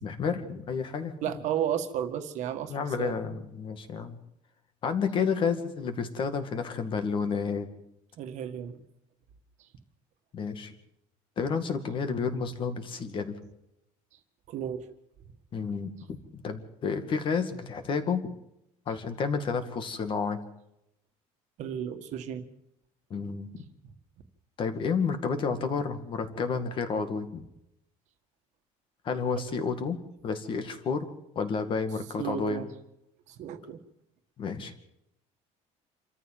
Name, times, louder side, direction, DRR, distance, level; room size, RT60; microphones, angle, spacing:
voice 1, 0.0-1.3 2.7-4.2 4.8-7.7 10.3-10.7 11.4-13.4 15.5-18.3 18.9-20.4 23.1-23.5 24.6-27.4 29.0-30.0 30.2-32.6 34.4-34.7, left 5 dB, 35° left, 8 dB, 2.2 m, -30 dB
voice 2, 1.2-3.2 8.2-8.8 14.5-14.8 21.6-22.5 29.5-29.6 32.2-32.7 33.3-33.8, right 9 dB, 55° right, 8 dB, 1.9 m, -33 dB
26.5 x 14.0 x 7.6 m, 0.82 s
cardioid pair, 160°, 14 cm